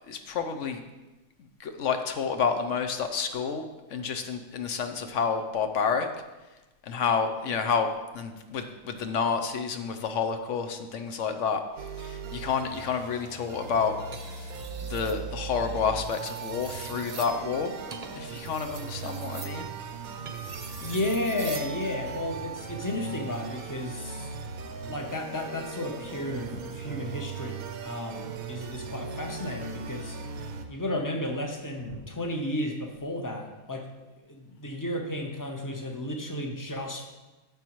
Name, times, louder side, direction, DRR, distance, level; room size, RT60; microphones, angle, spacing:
voice 1, 0.1-0.8 1.6-3.7 3.9-6.1 6.8-11.6 12.0-14.0 14.3-14.5 14.8-17.8 18.1-19.7, left 6 dB, 65° left, 7 dB, 0.9 m, -29 dB
sound 1, 11.8-30.7, right 5 dB, 85° right, 1.2 m, -39 dB
sound 2, 14.0-15.2 15.9-21.8 23.2-23.5, right 4 dB, 45° right, 0.5 m, -44 dB
voice 2, 20.8-24.3 24.9-30.2 30.7-33.9 34.3-37.1, left 1 dB, 20° left, 3 dB, 0.6 m, -33 dB
Thunder, 25.9-32.0, equal, 40° left, 1.4 m, -50 dB
10.5 x 6.9 x 3.0 m, 1.1 s
omnidirectional pair, 1.5 m